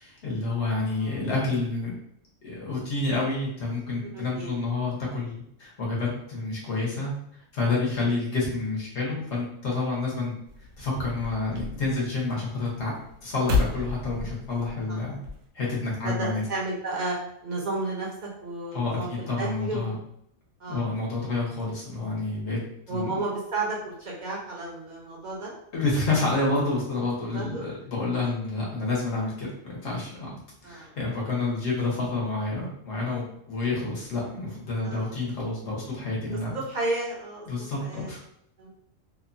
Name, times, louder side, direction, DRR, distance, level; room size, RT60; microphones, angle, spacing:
voice 1, 0.0-2.0 2.4-7.1 7.5-10.3 10.8-12.9 13.2-15.2 15.5-16.4 18.7-20.0 20.7-22.6 22.9-23.2 25.7-30.4 30.6-36.6 37.5-38.2, left 3 dB, 55° left, -4 dB, 1.1 m, -29 dB
voice 2, 4.0-4.5 7.9-8.1 14.9-15.0 16.0-19.9 20.6-20.9 22.9-25.5 27.3-27.7 30.6-31.0 34.8-35.2 36.5-37.5 37.8-38.1 38.6-38.7, right 2 dB, 45° right, -4 dB, 0.6 m, -32 dB
sound 1, 10.5-15.5, left 3 dB, 70° right, 0.9 m, -32 dB
2.9 x 2.1 x 2.5 m, 0.73 s
omnidirectional pair, 1.5 m